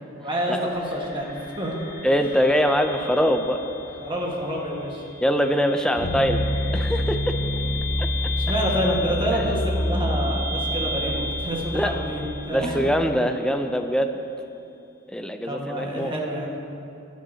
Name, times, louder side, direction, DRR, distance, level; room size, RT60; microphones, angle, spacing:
voice 1, 0.0-1.7 2.2-2.3 4.0-5.0 8.4-12.8 15.4-16.6, equal, 20° right, -2 dB, 1.5 m, -28 dB
sound 1, 0.7-13.7, left 2 dB, 85° left, 2.5 m, -36 dB
voice 2, 2.0-3.6 5.2-6.4 6.7-7.3 8.0-8.1 11.7-12.0 12.5-14.2 15.1-16.1, equal, 5° left, 6 dB, 0.4 m, -23 dB
sound 2, 6.0-13.2, left 1 dB, 50° left, 0.6 m, -28 dB
18.0 x 10.5 x 2.8 m, 2.7 s
head